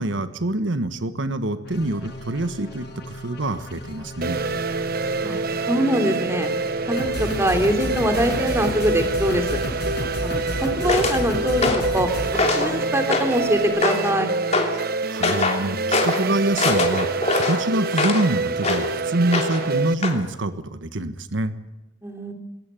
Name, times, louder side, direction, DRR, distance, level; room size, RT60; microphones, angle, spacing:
voice 1, 0.0-4.4 15.1-21.5, right 1 dB, 85° right, 11 dB, 1.4 m, -25 dB
sound 1, 1.7-13.7, left 1 dB, 60° left, 5.2 m, -33 dB
sound 2, 4.2-19.9, right 3 dB, 55° right, 1.0 m, -27 dB
voice 2, 5.2-6.5 6.8-9.6 10.2-12.1 12.4-14.3 22.0-22.3, equal, 15° right, 6 dB, 3.1 m, -23 dB
sound 3, 10.9-11.2 11.6-11.9 12.3-12.7 13.1-13.4 13.8-14.1 14.5-14.8 15.2-15.6 15.9-16.2 16.6-18.3 18.6-18.9 19.3-19.7 20.0-20.2, left 3 dB, 35° left, 3.0 m, -23 dB
20.5 x 17.5 x 9.1 m, 0.92 s
head